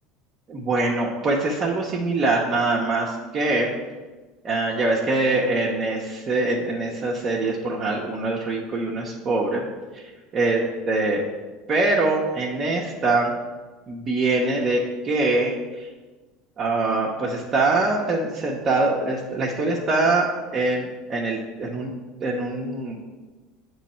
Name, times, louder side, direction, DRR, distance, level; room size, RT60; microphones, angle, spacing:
voice 1, 0.5-3.7 4.4-9.6 9.9-10.0 10.3-11.2 11.7-13.3 13.9-15.9 16.6-21.9 22.2-23.0, right 2 dB, 40° right, -4 dB, 0.9 m, -23 dB
8.2 x 3.1 x 4.4 m, 1.2 s
supercardioid pair, 95°, 0 cm